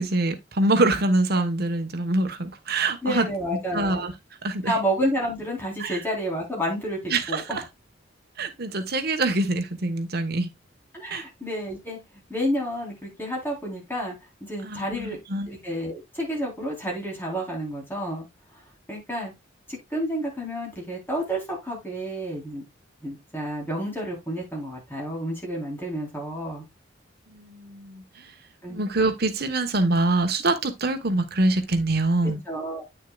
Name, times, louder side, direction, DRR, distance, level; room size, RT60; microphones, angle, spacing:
voice 1, 0.0-3.3 3.7-4.1 4.4-4.7 5.8-6.0 7.1-7.6 8.4-10.5 11.1-11.2 14.6-15.5 27.3-28.0 28.7-32.4, right 2 dB, 55° right, 1.1 m, -24 dB
voice 2, 3.0-4.0 4.6-7.6 10.9-14.1 14.4-15.2 15.5-18.3 18.9-19.3 19.7-22.6 23.0-26.6 28.6-28.8 32.2-32.8, equal, 10° left, 3.6 m, -30 dB
9.0 x 6.6 x 2.3 m
head